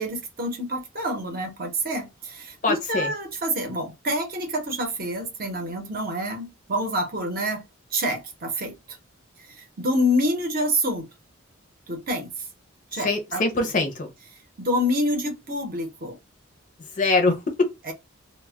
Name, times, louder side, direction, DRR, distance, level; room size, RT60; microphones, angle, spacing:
voice 1, 0.0-7.6 7.9-9.0 9.5-11.1 11.9-12.5 12.9-13.4 14.6-16.2 17.8-17.9, equal, 45° right, 0.7 m, -27 dB
voice 2, 2.6-3.1 13.0-14.1 17.0-17.7, left 3 dB, 35° left, 0.5 m, -23 dB
2.1 x 2.1 x 3.4 m
head